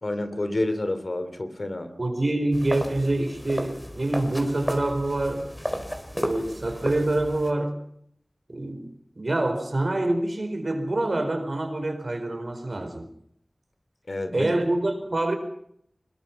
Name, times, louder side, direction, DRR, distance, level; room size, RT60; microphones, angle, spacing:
voice 1, 0.0-1.9 14.1-14.5, left 2 dB, 65° left, 9 dB, 2.8 m, -29 dB
voice 2, 2.0-5.5 6.2-7.8 8.5-8.9 9.2-13.1 14.3-15.4, right 2 dB, 60° right, 7 dB, 4.4 m, -26 dB
sound 1, 2.5-7.5, equal, 10° left, 3.9 m, -33 dB
23.5 x 21.0 x 5.9 m, 0.70 s
wide cardioid pair, 45°, 0 cm